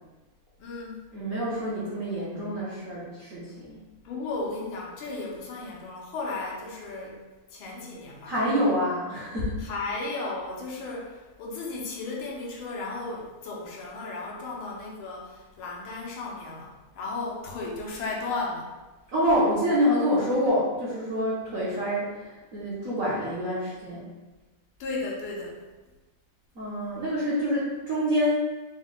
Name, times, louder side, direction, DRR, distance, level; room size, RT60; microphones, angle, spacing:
voice 1, 0.6-1.0 4.1-7.2 7.5-8.3 9.6-18.7 24.8-25.6, left 3 dB, 75° left, -3 dB, 1.6 m, -35 dB
voice 2, 1.1-3.8 8.2-9.7 19.1-24.1 26.5-28.4, equal, 55° right, -9 dB, 1.0 m, -27 dB
4.3 x 2.2 x 3.9 m, 1.2 s
omnidirectional pair, 2.4 m